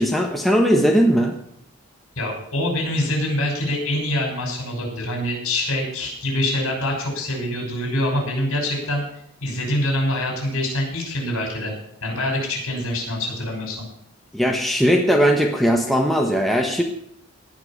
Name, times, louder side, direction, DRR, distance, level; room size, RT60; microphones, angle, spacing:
voice 1, 0.0-1.3 14.3-16.8, equal, ahead, 1 dB, 1.2 m, -18 dB
voice 2, 2.2-9.0 9.4-11.7 12.0-13.9, left 1 dB, 70° left, 1 dB, 6.0 m, -25 dB
18.0 x 6.0 x 7.4 m, 0.71 s
head